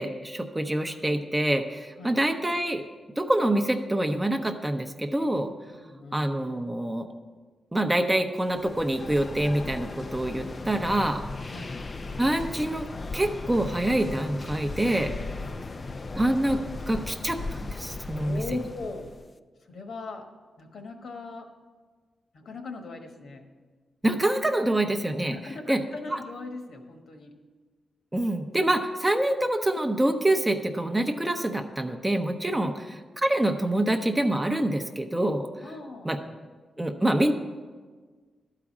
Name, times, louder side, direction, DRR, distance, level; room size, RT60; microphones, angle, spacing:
voice 1, 0.0-2.8 3.2-5.5 6.1-7.1 7.7-11.7 12.2-12.9 13.1-15.1 16.1-16.6 16.9-18.6 24.0-25.4 25.7-25.8 26.1-26.2 28.1-32.7 33.2-35.7 36.0-36.2 36.8-37.3, right 1 dB, 10° right, 6 dB, 0.6 m, -26 dB
voice 2, 5.7-6.3 11.5-11.8 15.4-15.7 18.1-19.1 19.7-20.3 20.6-21.5 22.3-23.4 25.3-27.3 32.6-32.8 35.6-36.4, left 3 dB, 70° left, 4 dB, 1.2 m, -40 dB
sound 1, 8.5-19.3, left 3 dB, 30° left, 0.4 m, -37 dB
12.0 x 4.9 x 7.2 m, 1.4 s
wide cardioid pair, 125°, 0 cm